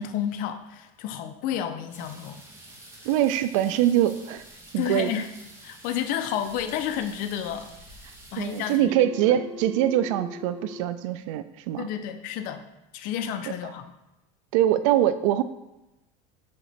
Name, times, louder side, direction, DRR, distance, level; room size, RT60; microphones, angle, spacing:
voice 1, 0.0-2.4 4.8-5.3 5.6-7.7 8.3-9.4 11.8-12.6 12.9-13.9, left 9 dB, 60° left, 8 dB, 0.6 m, -31 dB
sound 1, 1.9-8.8, right 1 dB, 15° right, 1.4 m, -48 dB
voice 2, 3.1-4.4 4.7-5.2 8.4-11.9 14.5-15.4, right 12 dB, 85° right, 13 dB, 0.4 m, -23 dB
Telephone, 8.8-10.8, left 3 dB, 85° left, 1.7 m, -41 dB
6.4 x 3.0 x 5.9 m, 0.98 s
supercardioid pair, 125°, 16 cm